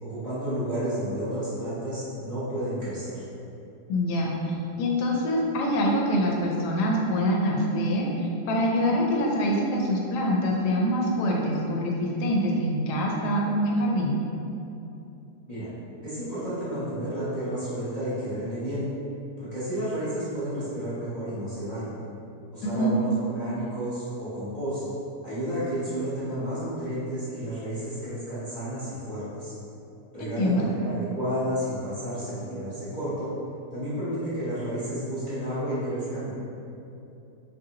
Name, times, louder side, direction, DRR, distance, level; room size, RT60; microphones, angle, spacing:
voice 1, 0.0-3.2 15.5-15.7 16.0-18.8 19.4-22.0 22.5-24.8 25.2-29.5 30.1-33.3 33.7-36.3, right 1 dB, 35° left, -12 dB, 0.7 m, -31 dB
voice 2, 3.9-14.2 22.6-22.9 30.2-30.6, equal, 90° left, -2 dB, 1.2 m, -25 dB
4.3 x 2.5 x 2.7 m, 2.8 s
omnidirectional pair, 1.7 m